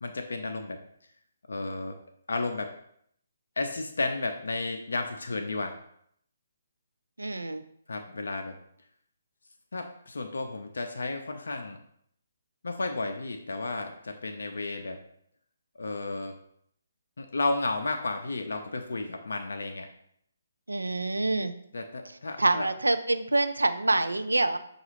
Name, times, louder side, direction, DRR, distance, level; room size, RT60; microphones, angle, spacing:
voice 1, 0.0-0.8 1.5-1.9 2.3-2.7 3.6-5.8 7.9-8.6 9.7-11.8 12.6-15.0 15.8-16.3 17.2-19.9 21.7-22.7, left 3 dB, 70° left, 4 dB, 0.4 m, -32 dB
voice 2, 7.2-7.6 20.7-21.5 22.4-24.6, right 2 dB, 85° right, 10 dB, 0.3 m, -26 dB
5.5 x 2.3 x 3.0 m, 0.69 s
figure-of-eight pair, 140°, 0 cm